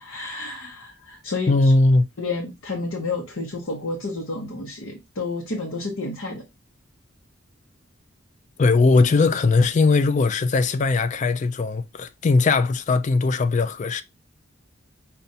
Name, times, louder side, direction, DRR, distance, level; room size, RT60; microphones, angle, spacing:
voice 1, 0.0-1.5 2.2-6.5, left 3 dB, 70° left, 0.8 m, -30 dB
voice 2, 1.5-2.1 8.6-14.0, left 3 dB, 35° left, 0.3 m, -19 dB
5.4 x 2.3 x 2.6 m
head